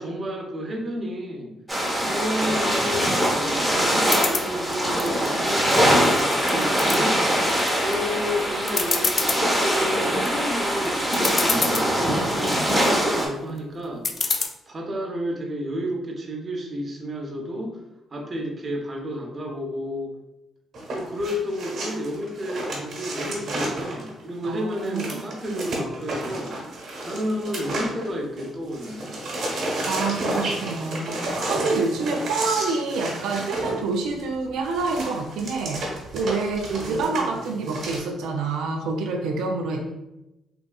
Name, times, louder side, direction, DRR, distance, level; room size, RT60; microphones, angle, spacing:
voice 1, 0.0-1.6 2.1-7.2 7.8-17.8 18.1-20.1 20.9-26.6 27.0-29.2 36.8-37.4 39.8-39.9, equal, 35° right, 0 dB, 0.8 m, -31 dB
sound 1, 1.7-13.3, equal, ahead, 1.0 m, -23 dB
sound 2, 4.0-4.5 5.0-5.8 6.2-7.0 7.5-7.9 8.3-8.4 8.7-9.4 9.9-10.3 10.9-11.0 11.1-11.9 12.4-12.9 14.0-14.5, left 4 dB, 45° left, 0.4 m, -26 dB
sound 3, 20.7-28.5 28.7-38.0, right 1 dB, 65° right, 1.1 m, -31 dB
voice 2, 24.4-25.6 29.9-39.9, right 3 dB, 85° right, 2 dB, 0.3 m, -27 dB
3.5 x 2.7 x 2.3 m, 0.92 s
cardioid pair, 90°, 0 cm